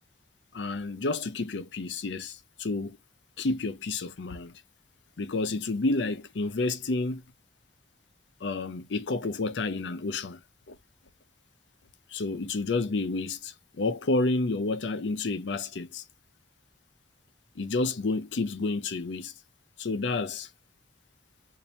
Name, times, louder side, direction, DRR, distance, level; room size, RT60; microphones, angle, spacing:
voice 1, 0.5-3.0 3.4-4.5 5.2-7.2 8.4-10.4 10.7-10.8 12.1-16.0 17.6-19.3 19.8-20.5, left 3 dB, 80° left, 0.6 m, -30 dB
2.9 x 2.6 x 4.1 m
head